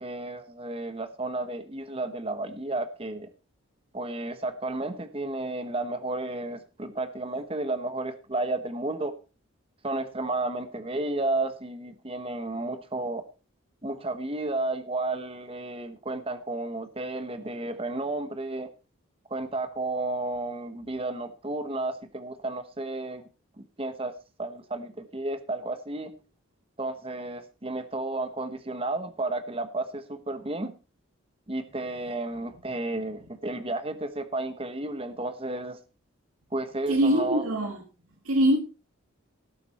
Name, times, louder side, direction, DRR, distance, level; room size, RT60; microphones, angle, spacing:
voice 1, 0.0-3.3 3.9-9.1 9.8-13.2 13.8-18.7 19.3-23.2 23.8-24.1 24.4-26.1 26.8-30.7 31.5-35.8 36.5-37.4, right 2 dB, 25° right, 1.1 m, -32 dB
voice 2, 36.9-37.8 38.2-38.6, right 1 dB, 90° right, 1.7 m, -23 dB
17.5 x 7.5 x 4.2 m
head